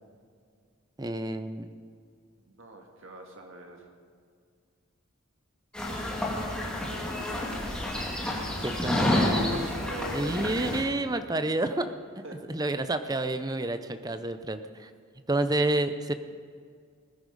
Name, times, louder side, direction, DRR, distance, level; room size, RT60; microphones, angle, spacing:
voice 1, 1.0-1.7 8.6-9.3 10.1-11.9 12.5-14.9 15.3-16.1, right 2 dB, 15° right, 10 dB, 0.6 m, -29 dB
voice 2, 2.5-3.9 9.2-10.5 12.2-12.4, equal, 60° right, 2 dB, 2.0 m, -41 dB
sound 1, 5.7-10.8, left 1 dB, 5° left, 2.5 m, -29 dB
19.5 x 10.0 x 5.3 m, 2.1 s
head